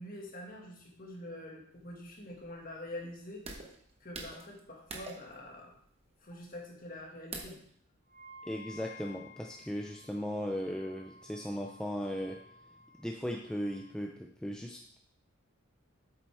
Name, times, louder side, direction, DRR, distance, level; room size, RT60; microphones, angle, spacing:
voice 1, 0.0-3.4 4.0-5.7 6.2-7.6, left 1 dB, 40° left, -1 dB, 1.8 m, -45 dB
sound 1, 1.7-7.7, right 3 dB, 30° right, 1.1 m, -48 dB
Wind instrument woodwind instrument, 8.1-14.0, left 2 dB, 50° right, 1.6 m, -54 dB
voice 2, 8.5-12.4 13.0-15.0, equal, 5° left, 0 dB, 0.5 m, -37 dB
8.6 x 7.5 x 3.4 m, 0.65 s
head